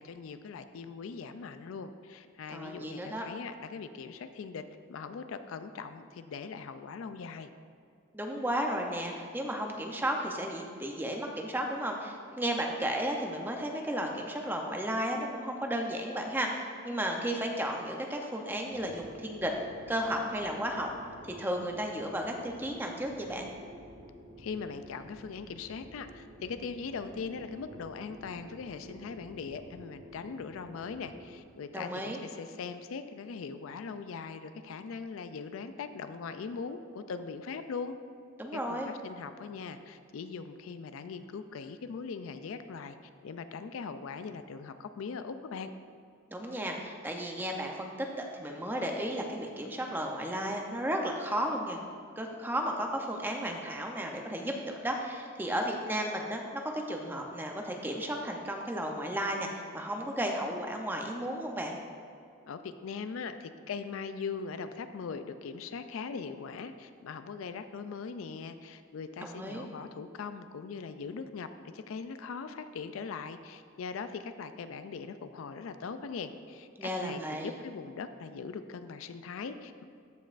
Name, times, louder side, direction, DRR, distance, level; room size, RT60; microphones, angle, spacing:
voice 1, 0.0-4.6 4.9-7.5 24.4-37.9 38.5-43.0 43.2-45.7 62.4-79.8, left 5 dB, 75° left, 10 dB, 0.4 m, -40 dB
voice 2, 2.5-3.2 8.1-19.5 19.9-20.9 21.2-23.5 31.7-32.2 38.4-38.9 46.3-47.9 48.3-51.8 52.2-61.8 69.2-69.7 76.8-77.5, equal, 10° right, 1 dB, 0.6 m, -34 dB
sound 1, 18.7-31.4, equal, 45° right, 1.1 m, -51 dB
14.5 x 5.3 x 2.5 m, 2.4 s
head